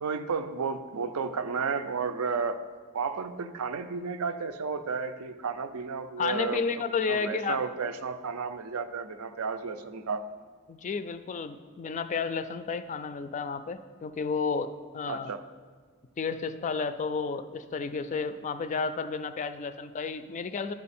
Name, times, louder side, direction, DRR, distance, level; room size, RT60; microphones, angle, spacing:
voice 1, 0.0-2.6 2.9-10.2 15.1-15.4, right 5 dB, 75° right, 9 dB, 0.5 m, -32 dB
voice 2, 6.2-7.6 10.7-15.3 16.2-20.7, left 5 dB, 35° left, 11 dB, 0.3 m, -32 dB
12.0 x 4.7 x 4.2 m, 1.5 s
head